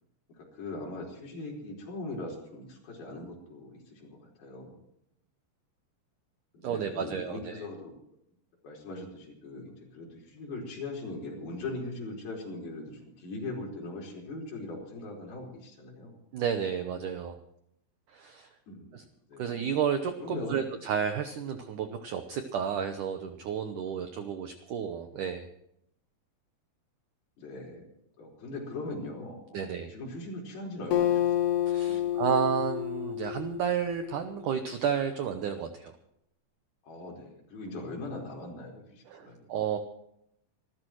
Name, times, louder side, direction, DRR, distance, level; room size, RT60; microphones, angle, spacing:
voice 1, 0.3-4.8 6.5-7.9 8.6-16.2 18.7-19.0 19.3-19.5 20.2-20.7 27.4-27.9 28.2-32.3 36.8-39.5, left 2 dB, 60° left, -2 dB, 6.4 m, -40 dB
voice 2, 6.6-7.5 16.3-17.4 18.1-18.5 18.9-19.0 19.4-25.5 29.5-29.9 31.7-35.9 39.1-39.8, right 7 dB, 85° right, 7 dB, 1.8 m, -31 dB
Acoustic guitar, 30.9-34.5, left 11 dB, 75° left, 3.5 m, -29 dB
26.5 x 14.5 x 3.1 m, 0.76 s
omnidirectional pair, 5.0 m